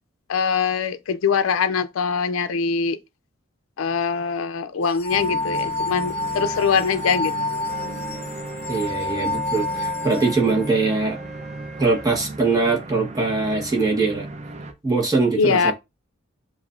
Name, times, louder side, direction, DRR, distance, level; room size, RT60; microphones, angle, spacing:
voice 1, 0.3-3.0 3.8-7.3 15.4-15.7, left 5 dB, 80° left, 0.4 m, -22 dB
sound 1, 4.9-10.7, left 2 dB, 30° left, 0.6 m, -28 dB
sound 2, 5.1-14.7, right 2 dB, 35° right, 0.5 m, -36 dB
Wind instrument woodwind instrument, 7.7-12.1, right 4 dB, ahead, 1.5 m, -41 dB
voice 2, 8.7-11.2 11.8-14.3 14.8-15.7, right 3 dB, 20° right, 1.1 m, -22 dB
7.1 x 2.5 x 2.5 m
head